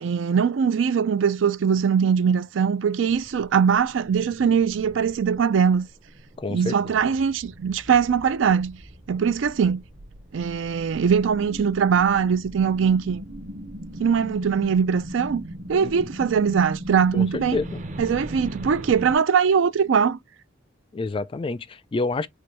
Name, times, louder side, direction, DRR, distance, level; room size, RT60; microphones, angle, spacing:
voice 1, 0.0-5.9 6.5-8.8 9.1-9.8 10.3-13.2 14.0-15.4 15.7-17.6 18.0-20.2, right 6 dB, 80° right, 0.4 m, -21 dB
sound 1, 3.1-19.2, equal, 40° right, 0.7 m, -39 dB
voice 2, 6.4-6.8 15.8-15.9 17.1-17.8 20.9-22.3, left 3 dB, 25° left, 0.3 m, -28 dB
4.3 x 2.3 x 3.1 m
head